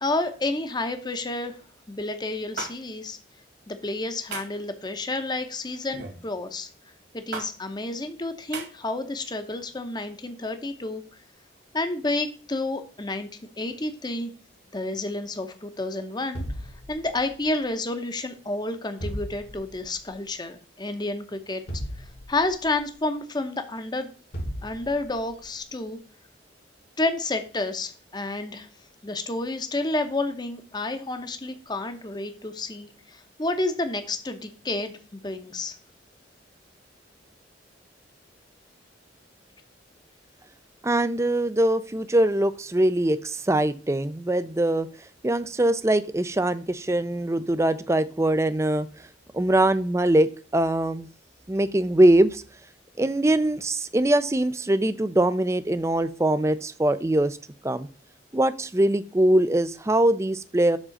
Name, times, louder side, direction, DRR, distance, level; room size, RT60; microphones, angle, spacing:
voice 1, 0.0-1.6 1.9-3.2 3.7-6.7 7.1-11.0 11.7-13.3 13.6-14.3 14.7-16.4 16.9-21.6 22.3-24.1 24.6-26.0 27.0-28.7 29.0-35.8, left 2 dB, 25° left, 8 dB, 0.8 m, -30 dB
sound 1, 2.6-2.7 4.3-4.6 5.9-6.2 7.3-7.5 8.5-8.7, right 5 dB, 60° right, 2.0 m, -34 dB
sound 2, 16.3-17.5 19.0-19.9 21.7-22.8 24.3-25.3, equal, 55° left, 1.3 m, -35 dB
voice 2, 40.8-44.9 45.2-48.9 49.3-51.1 51.5-52.4 53.0-57.4 57.6-57.9 58.3-60.8, right 1 dB, 15° right, 13 dB, 0.5 m, -22 dB
7.4 x 3.7 x 6.4 m, 0.39 s
head